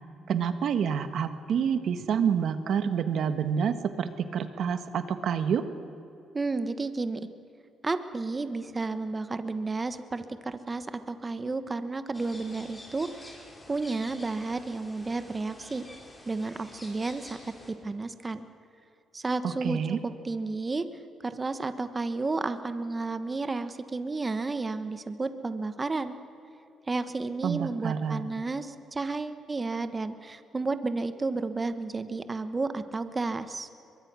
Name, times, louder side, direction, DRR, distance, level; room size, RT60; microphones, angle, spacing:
voice 1, 0.3-5.6 19.4-20.0 27.4-28.2, right 7 dB, 70° right, 10 dB, 1.5 m, -28 dB
voice 2, 6.3-7.2 7.8-13.1 13.7-15.8 16.3-17.4 17.8-18.4 19.1-20.9 21.2-26.1 26.9-33.7, right 3 dB, 25° right, 11 dB, 1.3 m, -32 dB
sound 1, 12.1-17.7, left 1 dB, 20° left, 5.4 m, -49 dB
23.0 x 22.5 x 6.3 m, 2.9 s
cardioid pair, 90°, 0 cm